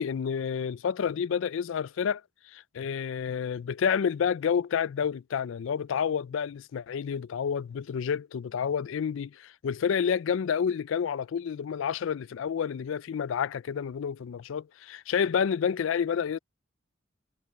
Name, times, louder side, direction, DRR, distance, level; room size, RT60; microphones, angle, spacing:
voice 1, 0.0-2.2 2.5-16.4, left 7 dB, 65° left, 0.4 m, -29 dB
head